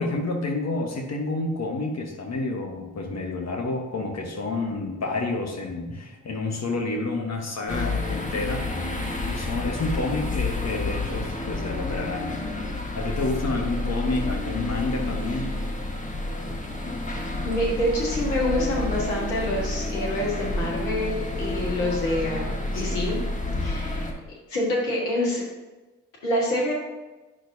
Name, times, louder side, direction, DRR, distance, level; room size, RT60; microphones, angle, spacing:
voice 1, 0.0-8.7 9.3-12.4 12.9-15.6 22.3-23.0, left 3 dB, 45° left, 1 dB, 1.3 m, -29 dB
sound 1, 7.7-24.1, left 2 dB, 20° left, 1.5 m, -29 dB
voice 2, 17.4-23.2 23.6-24.0 24.5-25.4 26.2-26.7, left 1 dB, 85° left, -3 dB, 1.7 m, -26 dB
8.8 x 6.1 x 2.7 m, 1.2 s
hypercardioid pair, 45°, 37 cm